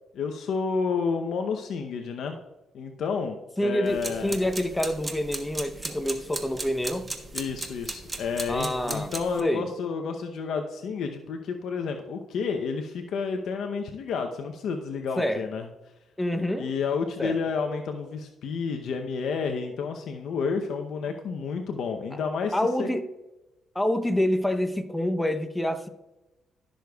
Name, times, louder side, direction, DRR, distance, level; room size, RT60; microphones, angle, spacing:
voice 1, 0.1-2.4 2.7-4.4 7.3-15.7 16.6-22.9, left 5 dB, 70° left, 0.7 m, -30 dB
voice 2, 3.6-7.0 8.5-9.1 9.4-9.6 15.2-15.5 16.2-16.7 17.2-17.4 22.1-22.2 22.5-23.0 23.7-25.9, left 1 dB, 10° left, 0.8 m, -27 dB
sound 1, 3.9-9.4, right 2 dB, 25° right, 1.2 m, -37 dB
15.5 x 6.4 x 2.3 m
cardioid pair, 90°, 0 cm